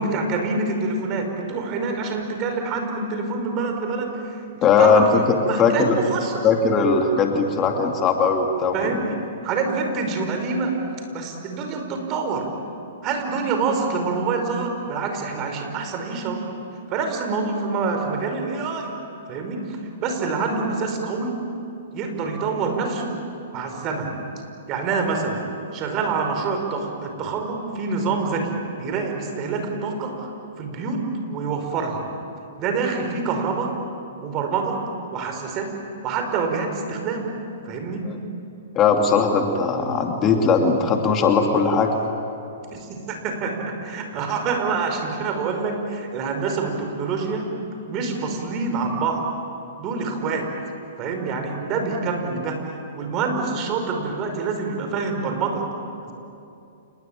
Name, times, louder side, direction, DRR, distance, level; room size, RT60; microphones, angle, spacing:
voice 1, 0.0-4.4 4.8-6.5 8.7-9.2 9.4-10.7 11.1-12.5 13.0-16.4 16.9-18.9 19.3-21.4 21.9-23.2 23.5-24.1 24.7-25.4 25.7-30.3 30.6-32.0 32.6-33.8 34.2-34.8 35.1-35.7 36.0-37.3 37.6-38.0 42.7-47.4 47.9-49.3 49.8-50.5 51.0-52.6 53.0-55.7, right 4 dB, 35° right, 4 dB, 5.4 m, -26 dB
voice 2, 4.6-6.0 6.4-9.0 38.0-38.2 38.7-41.9, left 5 dB, 30° left, 3 dB, 2.6 m, -19 dB
28.5 x 21.0 x 9.0 m, 2.7 s
hypercardioid pair, 125°, 0 cm